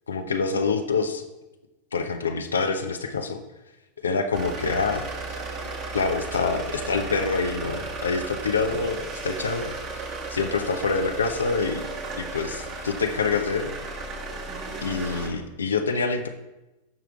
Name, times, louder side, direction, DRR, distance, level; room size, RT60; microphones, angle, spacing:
voice 1, 0.1-1.2 1.9-3.4 4.0-5.4 5.9-10.0 10.3-13.8 14.8-16.3, left 4 dB, 70° left, 6 dB, 0.7 m, -26 dB
sound 1, 4.3-15.3, right 3 dB, 35° right, 1.8 m, -35 dB
16.5 x 5.9 x 2.4 m, 1.0 s
figure-of-eight pair, 90°, 0 cm